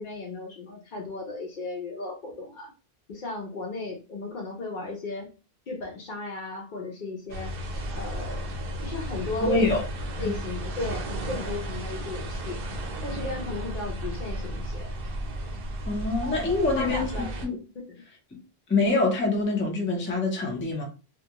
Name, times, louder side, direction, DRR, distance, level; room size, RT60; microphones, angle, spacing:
voice 1, 0.0-2.7 3.1-5.3 5.7-7.5 7.9-8.5 8.8-9.7 10.2-12.6 13.0-14.9 16.8-17.5, left 3 dB, 60° left, 0.7 m, -35 dB
sound 1, 7.3-17.5, right 1 dB, 65° right, 0.8 m, -34 dB
voice 2, 9.4-9.8 10.2-10.3 15.9-17.1 17.4-17.6 18.3-18.4 18.7-20.8, left 3 dB, 15° left, 0.5 m, -25 dB
2.3 x 2.1 x 2.8 m
omnidirectional pair, 1.0 m